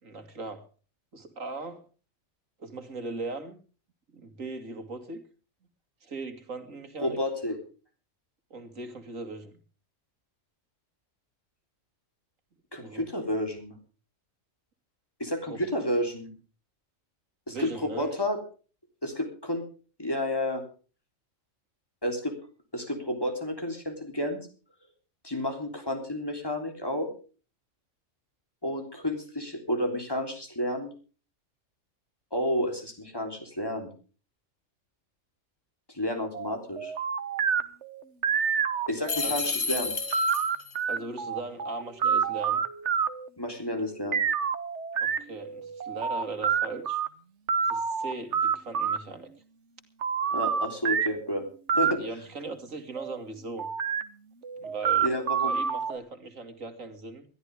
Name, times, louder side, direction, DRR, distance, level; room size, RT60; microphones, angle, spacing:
voice 1, 0.0-0.6 1.1-1.9 2.6-3.6 4.1-5.2 6.0-7.2 8.5-9.6 12.8-13.1 15.5-15.7 17.5-18.2 39.2-39.4 40.9-42.6 45.0-47.0 47.6-49.3 51.7-53.7 54.5-55.1 55.4-57.3, right 3 dB, 80° right, 7 dB, 2.7 m, -39 dB
voice 2, 7.0-7.6 12.7-13.8 15.2-16.3 17.5-18.4 19.0-19.6 20.0-20.6 22.0-22.3 22.7-24.4 25.2-27.1 28.6-30.9 32.3-33.9 35.9-36.9 38.9-39.9 43.4-44.2 50.3-51.4 51.7-52.0 55.0-55.6, left 1 dB, 15° left, 4 dB, 3.7 m, -30 dB
sound 1, 36.3-39.3 39.7-43.3 44.1-47.1 47.5-49.0 50.0-51.3 51.7-51.9 53.0-53.2 53.6-54.0 54.4-56.0, right 7 dB, 60° right, 1.3 m, -28 dB
sound 2, 39.1-40.8, left 4 dB, 75° left, 2.5 m, -31 dB
21.5 x 13.5 x 3.5 m, 0.37 s
omnidirectional pair, 1.4 m